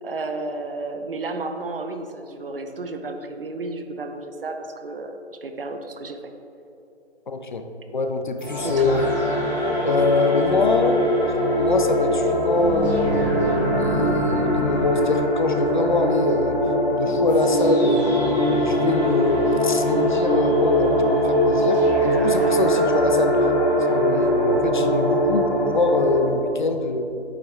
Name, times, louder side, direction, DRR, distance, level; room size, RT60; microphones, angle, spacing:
voice 1, 0.0-6.2 8.6-9.0, right 2 dB, 55° right, 6 dB, 0.8 m, -32 dB
voice 2, 7.3-7.6 7.9-9.0 9.8-11.0 11.6-16.6 16.9-23.4 23.9-27.0, left 3 dB, 45° left, 6 dB, 0.6 m, -24 dB
sound 1, 8.4-26.2, equal, 5° right, 1.3 m, -21 dB
sound 2, 8.8-10.9 12.5-14.9, left 1 dB, 25° left, 1.8 m, -30 dB
8.9 x 6.6 x 3.3 m, 3.0 s
figure-of-eight pair, 150°, 34 cm